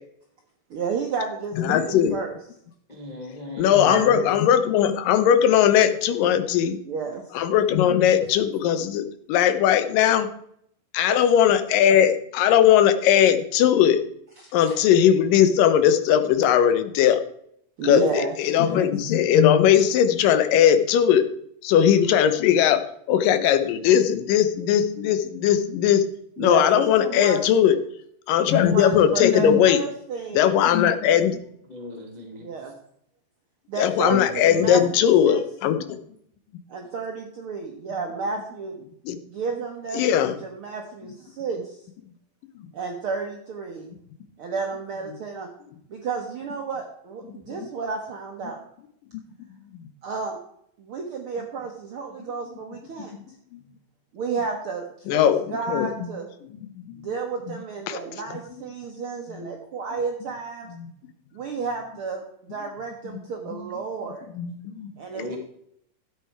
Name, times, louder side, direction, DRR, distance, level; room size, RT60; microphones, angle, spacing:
voice 1, 0.7-2.3 3.8-4.3 6.8-7.5 11.1-11.2 14.4-14.8 17.8-18.9 26.4-27.4 28.5-30.5 32.4-32.7 33.7-34.8 35.2-35.4 36.7-38.8 39.3-41.8 42.7-43.9 44.4-45.5 45.9-48.6 50.0-50.4 50.8-53.1 54.1-56.3 57.0-60.7 61.3-64.2 65.0-65.4, right 5 dB, 70° right, 2 dB, 1.3 m, -31 dB
voice 2, 1.6-2.2 3.6-6.8 7.3-10.3 10.9-14.0 14.5-17.2 17.8-21.3 21.6-22.8 23.1-26.0 26.4-27.8 28.3-29.8 30.3-31.4 33.8-36.0 39.1-39.2 39.9-40.3 47.3-47.7 49.7-49.8 53.1-53.2 53.5-53.6 55.1-56.1 56.8-57.1 57.9-58.0 59.4-59.5 60.8-60.9 63.5-63.7 64.3-64.9, left 9 dB, 80° left, 10 dB, 2.5 m, -19 dB
voice 3, 2.9-3.7 31.7-32.5 65.1-65.4, left 2 dB, 40° left, 0 dB, 0.6 m, -37 dB
12.5 x 8.4 x 4.6 m, 0.70 s
omnidirectional pair, 4.0 m